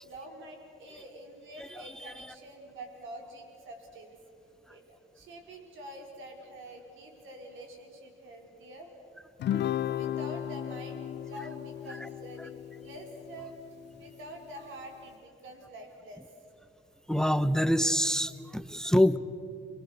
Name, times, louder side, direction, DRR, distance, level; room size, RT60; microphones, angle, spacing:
voice 1, 0.0-4.2 4.7-8.9 9.8-13.6 14.0-16.2, right 1 dB, 80° right, 2 dB, 4.8 m, -46 dB
Guitar, 9.4-14.0, left 11 dB, 60° left, 0.5 m, -35 dB
voice 2, 17.1-19.2, equal, 5° left, 14 dB, 0.8 m, -26 dB
30.0 x 21.0 x 6.6 m, 2.4 s
cardioid pair, 90°, 20 cm